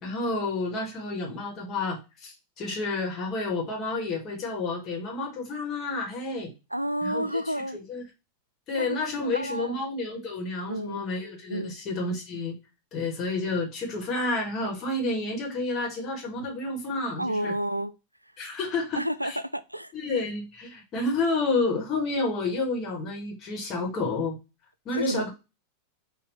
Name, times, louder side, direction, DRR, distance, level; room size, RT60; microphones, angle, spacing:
voice 1, 0.0-6.5 7.0-7.4 7.7-8.0 8.7-12.5 12.9-17.5 18.4-19.4 19.9-24.4 24.8-25.3, left 3 dB, 35° left, 1.6 m, -30 dB
voice 2, 6.7-7.8 8.7-9.8 10.7-11.0 11.5-11.8 16.4-16.5 17.2-17.9 18.9-19.9 24.9-25.3, equal, 85° right, 0.3 m, -31 dB
4.6 x 2.6 x 4.0 m
figure-of-eight pair, 90°, 0 cm